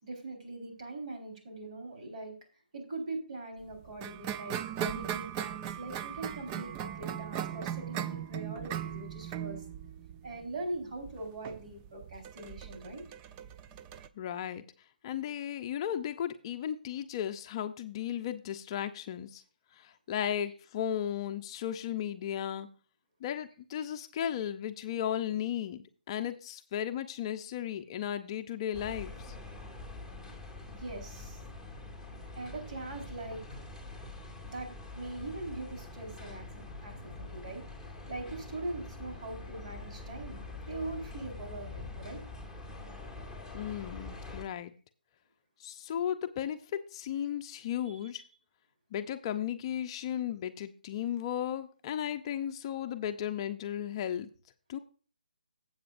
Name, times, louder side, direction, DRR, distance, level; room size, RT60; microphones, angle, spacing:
voice 1, 0.0-2.3 2.7-9.6 10.2-13.0 30.7-31.4 32.3-33.4 34.4-36.4 36.8-42.2 47.8-48.2, right 2 dB, 50° right, 3 dB, 4.3 m, -42 dB
sound 1, 3.7-14.1, right 10 dB, 20° right, 0.4 m, -38 dB
voice 2, 14.2-14.6 15.0-19.4 19.7-22.7 23.2-29.4 43.5-44.7 45.6-48.2 48.9-54.3 54.7-54.8, left 10 dB, 35° left, 8 dB, 0.6 m, -35 dB
sound 2, 28.7-44.4, left 3 dB, 5° right, 2.3 m, -45 dB
13.5 x 8.0 x 2.5 m, 0.37 s
hypercardioid pair, 150°, 5 cm